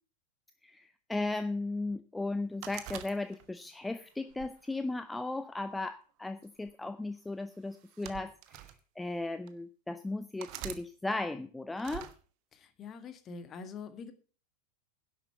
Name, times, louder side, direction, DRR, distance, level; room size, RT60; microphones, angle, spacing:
voice 1, 0.6-8.6 9.0-12.1, left 2 dB, 5° left, 11 dB, 0.6 m, -36 dB
sound 1, 2.6-3.7 4.3-5.5 6.4-6.7 7.7-8.8 9.5-9.6 10.4-10.8 11.8-12.2, right 14 dB, 45° right, 1.2 m, -45 dB
voice 2, 12.5-14.1, left 5 dB, 30° left, 10 dB, 1.7 m, -45 dB
11.0 x 7.8 x 7.0 m, 0.39 s
figure-of-eight pair, 90°, 0 cm